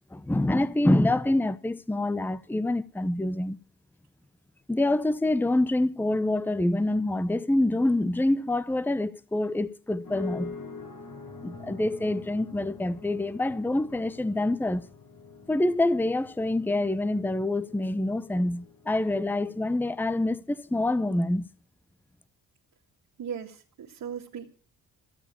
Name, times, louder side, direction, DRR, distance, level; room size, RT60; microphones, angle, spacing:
voice 1, 0.1-3.6 4.7-10.6 11.4-14.9 15.5-21.5, left 1 dB, 5° left, 0.8 m, -26 dB
sound 1, 10.0-20.1, left 4 dB, 60° left, 4.6 m, -45 dB
voice 2, 23.2-24.5, right 8 dB, 75° right, 2.1 m, -37 dB
15.5 x 7.1 x 9.9 m
cardioid pair, 65°, 35 cm